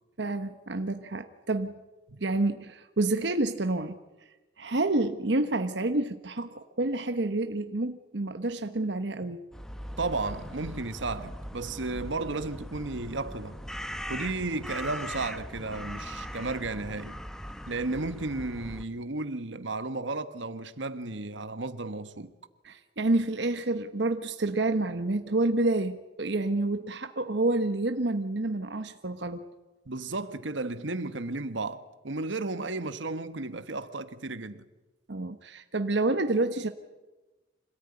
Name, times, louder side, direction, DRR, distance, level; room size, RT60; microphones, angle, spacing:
voice 1, 0.2-1.8 2.2-4.0 4.6-9.4 22.6-29.4 35.1-36.7, right 2 dB, 65° right, 1.1 m, -28 dB
sound 1, 9.5-18.8, equal, 5° left, 1.0 m, -40 dB
voice 2, 10.0-13.5 14.1-17.2 17.7-22.3 29.9-34.6, right 3 dB, 85° right, 1.4 m, -34 dB
26.0 x 18.0 x 9.8 m
head